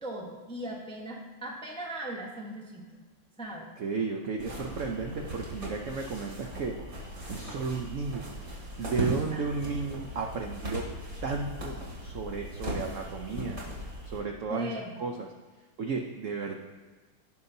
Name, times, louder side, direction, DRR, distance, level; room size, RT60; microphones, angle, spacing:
voice 1, 0.0-3.0 3.4-3.7 9.0-9.4 14.5-15.0, right 1 dB, 5° left, -1 dB, 0.6 m, -39 dB
voice 2, 3.8-8.3 8.8-10.9 11.2-13.6 14.1-14.7 15.0-15.3 15.8-16.6, right 4 dB, 70° right, 2 dB, 0.7 m, -34 dB
sound 1, 4.4-14.2, equal, 45° right, 2.9 m, -38 dB
16.5 x 5.6 x 2.7 m, 1.4 s
omnidirectional pair, 2.2 m